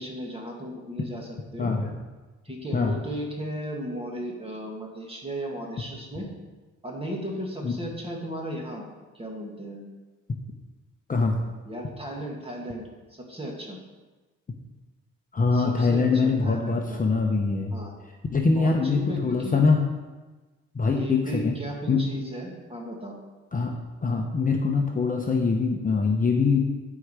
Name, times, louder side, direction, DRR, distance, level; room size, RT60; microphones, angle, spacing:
voice 1, 0.0-1.8 2.4-6.3 6.8-8.8 9.1-9.8 11.2-13.8 15.5-17.0 17.7-17.9 18.5-19.6 20.9-23.2, equal, 20° right, -1 dB, 2.2 m, -36 dB
voice 2, 1.6-1.9 2.7-2.9 7.6-7.8 11.1-11.4 15.3-17.7 18.3-19.8 20.7-21.6 21.9-22.0 23.5-23.7 24.0-26.6, left 4 dB, 25° left, 2 dB, 0.9 m, -23 dB
11.0 x 4.9 x 5.0 m, 1.2 s
cardioid pair, 90°, 30 cm